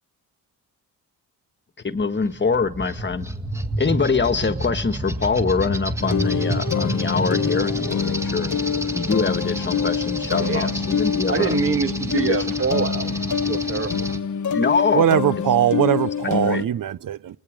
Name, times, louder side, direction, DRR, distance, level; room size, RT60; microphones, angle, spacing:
voice 1, 1.8-3.3 3.8-8.5 8.9-11.5 12.2-12.4 14.5-15.1 16.2-16.6, left 4 dB, 30° left, 1.5 m, -24 dB
sound 1, 2.3-14.2, right 1 dB, 5° right, 1.9 m, -30 dB
sound 2, 6.0-16.7, left 7 dB, 50° left, 1.2 m, -26 dB
voice 2, 10.4-10.7 11.3-14.2, right 5 dB, 35° right, 1.6 m, -25 dB
voice 3, 14.9-17.4, right 10 dB, 60° right, 0.9 m, -20 dB
29.0 x 20.5 x 5.1 m
cardioid pair, 75°, 38 cm